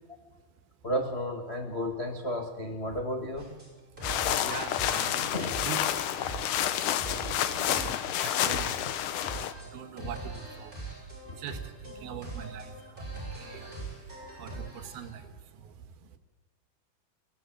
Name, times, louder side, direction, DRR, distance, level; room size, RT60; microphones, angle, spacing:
voice 1, 0.8-3.6 5.3-5.5 11.3-11.4, equal, 50° left, 2 dB, 0.7 m, -33 dB
sound 1, 3.4-15.1, right 3 dB, 10° right, 7.4 m, -42 dB
sound 2, 4.0-9.5, left 11 dB, 70° left, 2.3 m, -29 dB
voice 2, 4.4-5.3 5.6-5.8 6.2-6.6 6.9-7.0 7.5-8.8 9.6-10.8 11.3-16.2, right 8 dB, 80° right, 9 dB, 3.3 m, -43 dB
23.5 x 16.5 x 8.9 m, 1.3 s
omnidirectional pair, 4.4 m